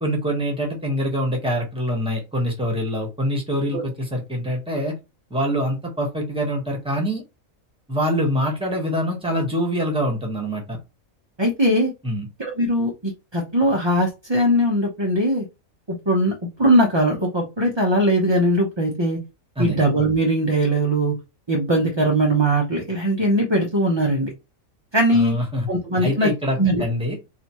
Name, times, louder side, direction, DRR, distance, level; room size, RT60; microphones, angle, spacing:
voice 1, 0.0-4.9 5.3-7.2 7.9-10.8 12.0-12.3 19.6-19.8 25.1-25.7 26.0-27.2, equal, 5° right, 1 dB, 1.3 m, -24 dB
voice 2, 11.4-11.9 12.4-15.4 16.1-16.3 16.6-19.2 19.6-21.1 21.5-24.3 24.9-25.3 25.7-26.3 26.6-26.8, right 1 dB, 25° right, 0 dB, 0.7 m, -20 dB
4.1 x 3.1 x 3.0 m, 0.25 s
omnidirectional pair, 1.4 m